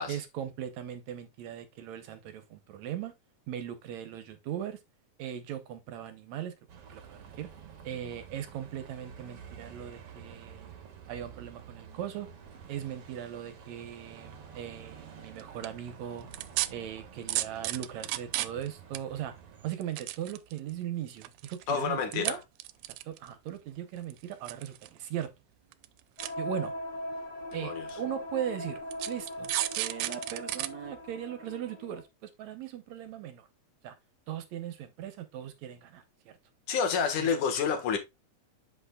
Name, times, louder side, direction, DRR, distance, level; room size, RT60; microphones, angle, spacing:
voice 1, 0.1-3.1 3.5-4.8 5.2-6.5 6.9-7.5 7.8-10.7 11.1-12.3 12.7-16.3 16.7-19.3 19.6-22.4 23.1-25.3 26.4-26.7 27.5-28.8 29.1-33.5 33.8-34.0 34.3-36.4 37.2-37.3, right 10 dB, 70° right, 2.0 m, -39 dB
Bus, 6.7-19.7, right 7 dB, 55° right, 1.9 m, -50 dB
sound 1, 15.4-15.7 16.3-16.7 17.3-18.7 18.9-19.0 19.7-20.7 21.2-21.6 22.1-22.3 22.6-23.3 24.1-24.9 25.2-25.3 25.7-25.9 26.2-26.3 27.1-27.2 27.9-28.0 28.9-30.7 31.1-31.2, right 16 dB, 90° right, 2.1 m, -32 dB
voice 2, 21.7-22.4 27.6-27.9 36.7-38.0, left 6 dB, 80° left, 3.0 m, -29 dB
sound 2, 26.2-32.0, left 1 dB, 15° left, 1.3 m, -40 dB
7.8 x 6.2 x 2.3 m
omnidirectional pair, 3.5 m